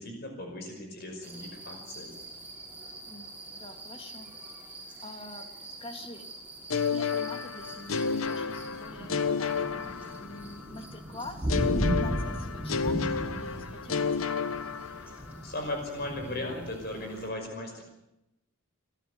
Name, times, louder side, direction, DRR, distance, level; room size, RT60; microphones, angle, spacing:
voice 1, 0.0-2.1 14.9-17.8, left 1 dB, 50° left, 3 dB, 5.5 m, -37 dB
sound 1, 1.2-17.3, right 1 dB, 5° right, 5.6 m, -38 dB
voice 2, 2.9-3.3 3.6-4.3 5.0-6.3 6.9-9.5 10.2-14.4, left 2 dB, 25° left, 6 dB, 2.5 m, -46 dB
sound 2, 6.7-10.6 11.5-15.4, left 5 dB, 90° left, 1.2 m, -31 dB
29.0 x 13.5 x 9.7 m, 0.92 s
head